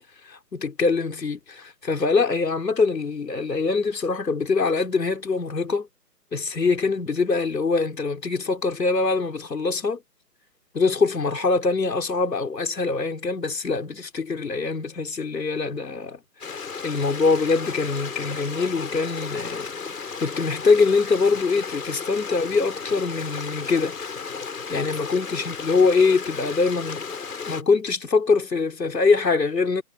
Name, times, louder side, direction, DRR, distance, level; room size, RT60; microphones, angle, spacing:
voice 1, 0.3-5.9 6.3-10.0 10.7-16.2 16.8-19.7 20.2-24.0 24.7-27.1 27.5-29.8, left 4 dB, 85° left, 4.9 m, -23 dB
Stream, 16.4-27.6, left 5 dB, 65° left, 7.3 m, -34 dB
hypercardioid pair, 165°, 49 cm